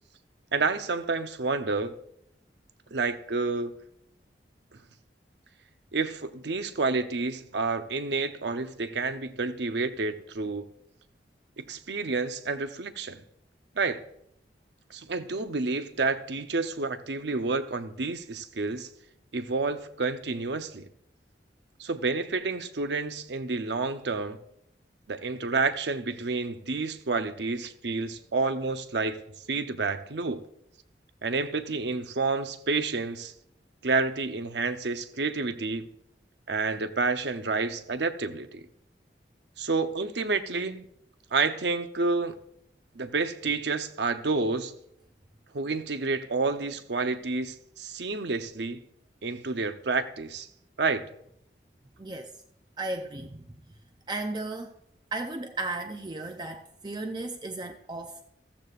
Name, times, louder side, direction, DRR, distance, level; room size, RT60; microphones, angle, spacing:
voice 1, 0.5-1.9 2.9-3.7 5.9-10.7 11.6-13.2 13.8-14.0 14.9-18.9 19.3-20.8 21.8-24.4 25.1-29.2 29.5-30.4 31.2-33.3 33.8-35.9 36.5-38.6 39.6-40.9 41.3-42.4 42.9-44.7 45.5-48.8 49.2-50.5 50.8-51.0, right 3 dB, 80° right, 0.8 m, -29 dB
voice 2, 52.0-52.3 52.8-53.5 54.1-54.8 55.1-58.2, right 2 dB, 25° right, 0.5 m, -35 dB
14.5 x 14.0 x 2.5 m
head